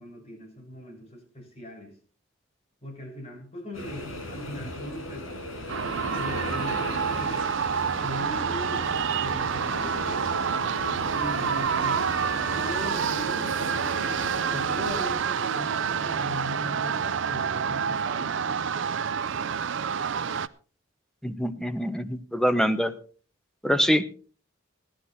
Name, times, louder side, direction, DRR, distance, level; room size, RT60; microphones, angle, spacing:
voice 1, 0.0-1.9 2.8-7.5 8.0-10.3 11.1-12.2 12.5-13.6 14.5-18.5, equal, 30° left, -1 dB, 5.6 m, -39 dB
sound 1, 3.7-15.1, left 1 dB, 80° left, 7.0 m, -37 dB
sound 2, 5.7-20.5, right 7 dB, 65° right, 0.5 m, -28 dB
voice 2, 21.2-22.9 23.6-24.1, equal, 5° left, 9 dB, 0.8 m, -25 dB
15.5 x 11.5 x 4.2 m, 0.40 s
head